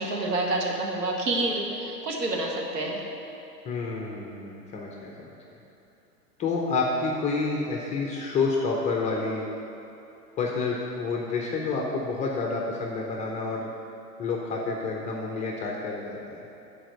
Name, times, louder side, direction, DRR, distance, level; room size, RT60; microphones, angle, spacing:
voice 1, 0.0-3.0, right 2 dB, 70° right, -1 dB, 1.7 m, -28 dB
voice 2, 3.6-5.3 6.4-9.5 10.4-13.7 14.2-16.4, left 4 dB, 15° left, -1 dB, 0.6 m, -29 dB
8.7 x 4.7 x 6.8 m, 2.9 s
figure-of-eight pair, 110°, 49 cm